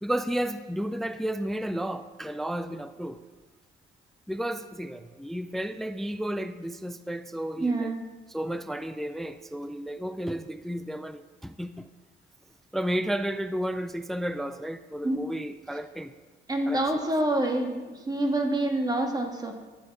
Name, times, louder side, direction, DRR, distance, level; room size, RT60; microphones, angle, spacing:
voice 1, 0.0-3.2 4.3-7.9 8.3-11.9 12.7-16.1 16.7-16.8, equal, ahead, 11 dB, 0.4 m, -32 dB
voice 2, 7.6-8.0 15.0-15.2 16.5-19.5, right 1 dB, 20° right, 3 dB, 1.7 m, -27 dB
11.0 x 7.8 x 4.7 m, 1.2 s
cardioid pair, 90°, 20 cm